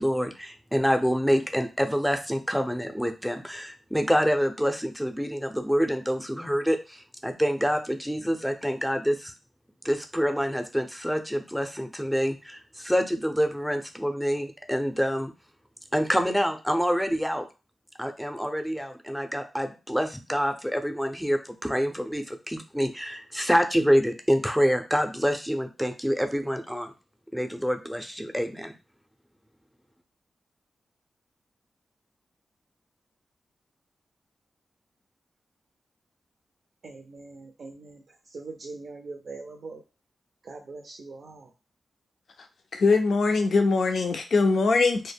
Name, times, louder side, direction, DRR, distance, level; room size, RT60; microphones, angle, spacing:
voice 1, 0.0-9.3 9.8-15.3 15.9-17.5 18.0-26.9 27.3-28.7, equal, ahead, 0.5 m, -26 dB
voice 2, 36.8-38.0 38.3-39.8 40.4-41.5, right 3 dB, 75° right, 0.5 m, -42 dB
voice 3, 42.7-45.1, left 3 dB, 75° left, 0.4 m, -22 dB
2.1 x 2.1 x 3.4 m
cardioid pair, 55°, 0 cm